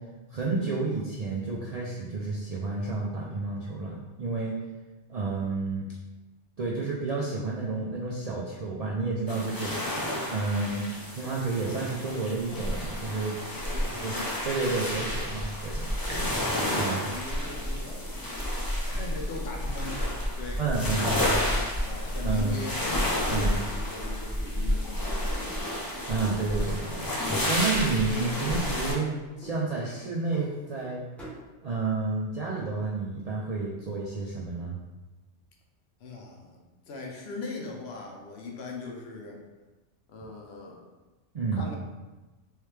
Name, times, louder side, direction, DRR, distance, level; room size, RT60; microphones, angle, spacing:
voice 1, 0.3-4.5 5.1-5.9 6.6-9.7 10.3-10.8 11.1-13.3 14.0-14.1 14.4-16.2 16.8-17.1 20.6-21.3 22.2-22.6 23.3-23.6 26.1-31.0 31.6-34.8 41.3-41.7, right 3 dB, 60° right, -4 dB, 0.4 m, -30 dB
sound 1, 9.3-28.9, left 1 dB, 30° left, 0.4 m, -30 dB
voice 2, 13.7-14.2 14.9-15.2 16.0-16.4 16.7-18.1 18.9-20.6 20.9-22.8 23.2-25.8 36.0-36.6 36.9-39.4 40.1-40.9 41.5-41.8, left 3 dB, 65° left, 0 dB, 0.9 m, -40 dB
sound 2, 24.3-26.2 26.5-27.3 27.5-28.2 28.5-29.1 29.4-30.9 31.2-31.5, right 1 dB, ahead, 1.0 m, -47 dB
3.2 x 3.2 x 3.2 m, 1.1 s
omnidirectional pair, 1.2 m